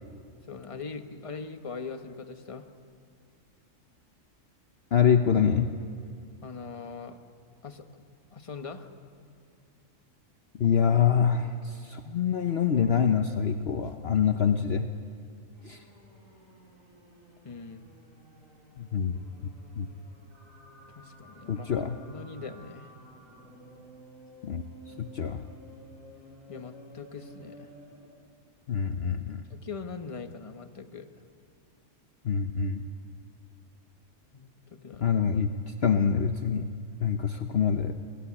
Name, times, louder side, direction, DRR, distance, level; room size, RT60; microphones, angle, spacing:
voice 1, 0.5-2.7 6.4-7.2 7.6-8.9 17.4-17.9 20.9-22.9 26.5-27.7 29.5-31.1 34.3-35.1, left 5 dB, 25° left, 7 dB, 1.2 m, -41 dB
voice 2, 4.9-5.7 10.6-14.9 15.6-15.8 18.8-19.2 19.8-19.9 21.5-21.9 24.4-24.6 25.0-25.4 28.7-29.4 32.2-32.8 35.0-36.7 37.0-38.0, left 7 dB, 55° left, 7 dB, 1.0 m, -25 dB
sound 1, 15.5-28.2, equal, 85° right, 7.3 m, -53 dB
28.0 x 19.0 x 9.9 m, 2.3 s
omnidirectional pair, 1.4 m